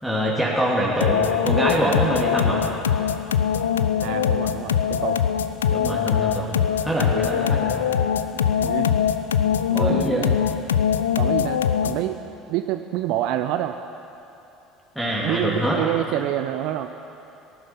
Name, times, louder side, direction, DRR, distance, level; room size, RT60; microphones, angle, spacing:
voice 1, 0.0-2.7 5.7-6.5 6.8-7.8 9.7-10.3 15.0-15.8, equal, ahead, -5 dB, 2.6 m, -24 dB
sound 1, 1.0-12.1, left 8 dB, 75° left, 0.5 m, -22 dB
voice 2, 4.0-5.2 8.3-8.9 9.7-10.4 11.2-12.2 12.5-13.8 15.2-16.9, right 13 dB, 60° right, 8 dB, 0.5 m, -27 dB
18.5 x 11.0 x 5.7 m, 2.9 s
figure-of-eight pair, 60°, 0 cm